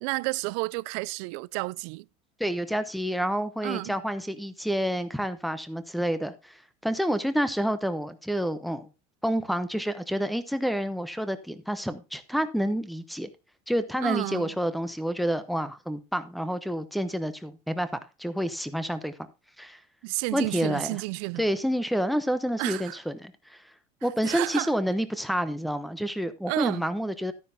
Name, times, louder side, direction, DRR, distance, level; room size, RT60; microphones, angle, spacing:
voice 1, 0.0-2.1 3.6-4.0 14.0-14.5 20.0-21.4 22.6-23.0 24.2-24.7 26.5-26.8, right 25 dB, 65° right, 0.4 m, -31 dB
voice 2, 2.4-6.6 6.8-8.9 9.2-13.3 13.7-17.9 18.2-19.3 19.6-19.8 20.3-21.0 21.4-23.3 24.0-27.3, equal, ahead, 0.8 m, -28 dB
12.5 x 9.8 x 2.7 m
cardioid pair, 165°, 17 cm